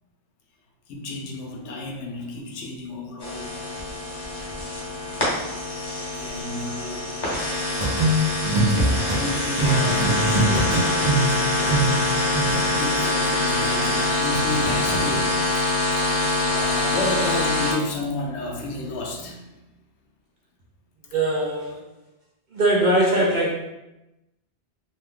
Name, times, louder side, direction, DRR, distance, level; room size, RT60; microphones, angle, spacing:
voice 1, 0.9-3.5 6.2-7.2 8.5-11.9 12.5-19.7, left 2 dB, 80° left, 1 dB, 0.9 m, -32 dB
sound 1, 3.2-17.7, left 2 dB, 25° left, 0.7 m, -24 dB
sound 2, 7.8-9.2 9.6-12.7, right 2 dB, 20° right, 0.8 m, -22 dB
voice 2, 21.1-21.8 22.5-23.5, right 1 dB, 55° right, -3 dB, 0.6 m, -21 dB
2.6 x 2.2 x 3.5 m, 0.95 s
omnidirectional pair, 1.2 m